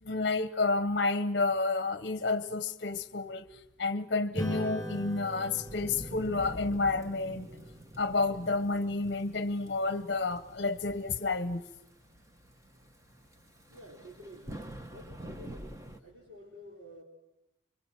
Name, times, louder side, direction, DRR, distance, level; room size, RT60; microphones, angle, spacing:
voice 1, 0.0-3.4 3.8-7.5 8.0-11.6, left 3 dB, 50° left, 12 dB, 0.9 m, -30 dB
Acoustic guitar / Strum, 4.3-9.1, equal, 10° left, 5.8 m, -42 dB
Thunderstorm / Rain, 4.8-16.0, right 1 dB, 15° right, 1.3 m, -48 dB
voice 2, 13.7-17.0, equal, 80° right, -2 dB, 3.7 m, -51 dB
25.5 x 23.5 x 7.3 m, 0.86 s
head